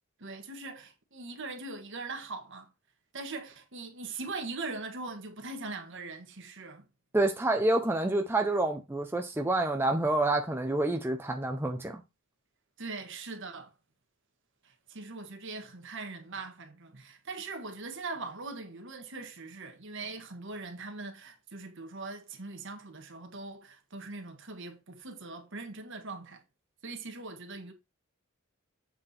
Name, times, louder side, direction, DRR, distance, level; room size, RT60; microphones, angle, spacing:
voice 1, 0.2-2.7 3.1-6.8 12.8-13.7 14.6-26.4 26.8-27.7, right 3 dB, 60° right, 1.7 m, -41 dB
voice 2, 7.1-12.0, right 2 dB, 10° right, 0.7 m, -28 dB
7.8 x 4.6 x 4.3 m
head